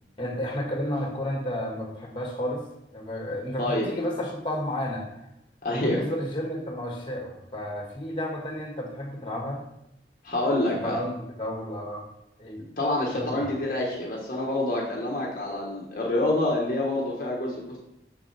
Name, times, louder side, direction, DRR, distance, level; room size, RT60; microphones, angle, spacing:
voice 1, 0.2-2.6 2.9-5.1 5.7-9.6 10.8-12.0 12.4-12.6 13.1-13.5, left 1 dB, 25° left, -1 dB, 1.7 m, -32 dB
voice 2, 3.6-3.9 5.6-6.0 10.2-11.0 12.8-17.8, left 1 dB, 45° left, -3 dB, 1.3 m, -27 dB
7.5 x 7.0 x 3.4 m, 0.84 s
head